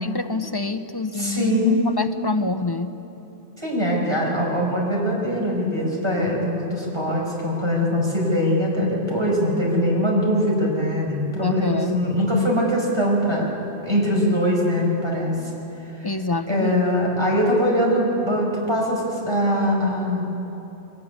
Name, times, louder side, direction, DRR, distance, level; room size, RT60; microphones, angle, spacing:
voice 1, 0.0-2.9 11.4-12.0 16.0-16.8, left 3 dB, 25° left, 8 dB, 0.8 m, -26 dB
voice 2, 1.1-1.8 3.6-13.5 13.8-15.5 16.0-16.1 16.5-20.3, equal, 25° right, -3 dB, 5.9 m, -22 dB
23.5 x 21.5 x 9.7 m, 2.9 s
omnidirectional pair, 1.1 m